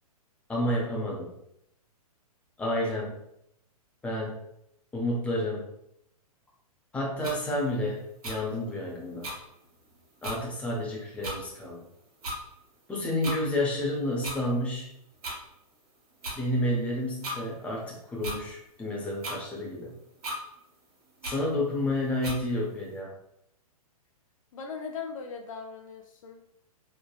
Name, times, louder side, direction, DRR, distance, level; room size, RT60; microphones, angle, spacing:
voice 1, 0.5-1.3 2.6-3.1 4.0-4.4 4.9-5.6 6.9-9.3 10.2-11.8 12.9-14.9 16.3-19.9 21.2-23.1, left 1 dB, 5° left, -3 dB, 0.6 m, -30 dB
sound 1, 7.2-7.4 8.2-8.4 9.2-9.4 9.9-10.0 10.2-10.4 11.2-11.4 12.2-12.4 13.2-13.4 14.2-14.4 15.2-15.4 16.2-16.4 17.2-17.4 18.2-18.4 19.2-19.4 20.2-20.4 21.2-21.4 22.2-22.4, right 1 dB, 70° right, 1.1 m, -35 dB
voice 2, 24.5-26.4, left 5 dB, 60° left, 3 dB, 0.4 m, -39 dB
3.1 x 2.1 x 2.3 m, 0.77 s
hypercardioid pair, 120°, 19 cm